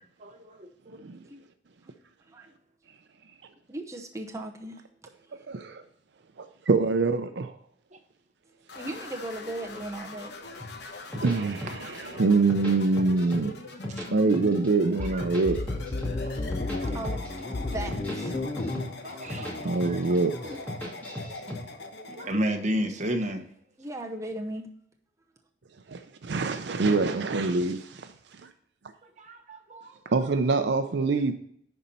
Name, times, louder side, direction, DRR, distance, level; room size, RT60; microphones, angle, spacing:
voice 1, 0.2-1.0 7.9-8.0 13.9-14.0 14.9-15.2 16.2-16.3 16.8-17.2 19.0-20.2 20.9-21.0 21.4-21.6 22.1-23.4 29.0-30.3, equal, 40° right, 1.1 m, -34 dB
voice 2, 3.7-4.8 8.7-10.3 16.9-17.2 17.5-18.3 21.8-22.2 23.8-24.7, right 1 dB, 15° right, 0.7 m, -37 dB
voice 3, 5.5-5.8 6.4-7.5 11.2-13.5 14.1-15.6 19.6-20.3 25.9-28.5 30.1-31.3, right 3 dB, 65° right, 0.5 m, -25 dB
sound 1, 8.7-22.3, left 2 dB, 65° left, 1.0 m, -42 dB
sound 2, 10.6-12.0 12.3-13.4 13.7-14.7 15.0-16.8 17.0-17.4 17.7-19.5 19.8-20.2 20.5-21.6, left 1 dB, 10° left, 2.3 m, -37 dB
sound 3, 15.0-20.6, left 2 dB, 30° left, 0.5 m, -33 dB
11.0 x 4.3 x 4.1 m
head